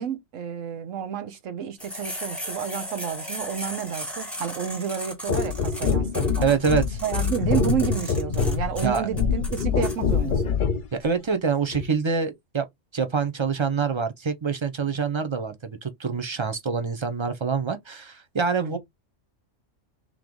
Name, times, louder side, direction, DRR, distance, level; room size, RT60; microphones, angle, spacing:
voice 1, 0.0-6.6 7.0-10.5 18.6-18.8, right 8 dB, 80° right, 1.2 m, -30 dB
sound 1, 1.8-10.0, equal, ahead, 1.5 m, -36 dB
sound 2, 5.3-10.9 11.7-11.9, left 6 dB, 50° left, 0.7 m, -25 dB
voice 2, 6.4-7.0 8.8-9.1 10.9-12.6 12.9-18.8, right 5 dB, 30° right, 0.5 m, -26 dB
3.6 x 3.1 x 3.8 m
omnidirectional pair, 1.3 m